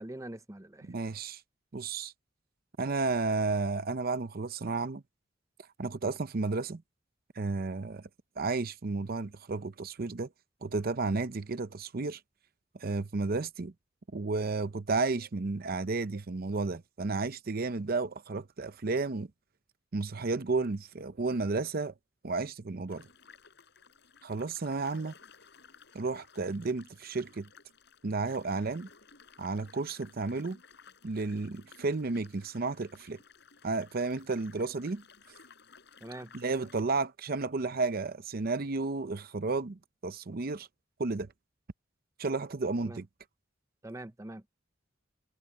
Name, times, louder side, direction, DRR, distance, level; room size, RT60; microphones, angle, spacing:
voice 1, 0.0-0.9 36.0-36.3 42.8-43.0 43.8-44.4, right 1 dB, 15° right, 0.7 m, -43 dB
voice 2, 0.8-1.4 1.7-2.1 2.8-5.0 5.8-6.8 7.3-8.1 8.4-10.3 10.6-12.2 12.7-13.7 14.1-19.3 19.9-21.9 22.2-23.1 24.2-25.1 25.9-27.5 28.0-28.9 29.4-30.6 31.0-33.2 33.6-35.0 36.3-40.7 41.0-41.3 42.2-43.1, right 3 dB, 50° right, 0.7 m, -32 dB
sound 1, 22.9-36.8, left 5 dB, 60° left, 6.3 m, -57 dB
head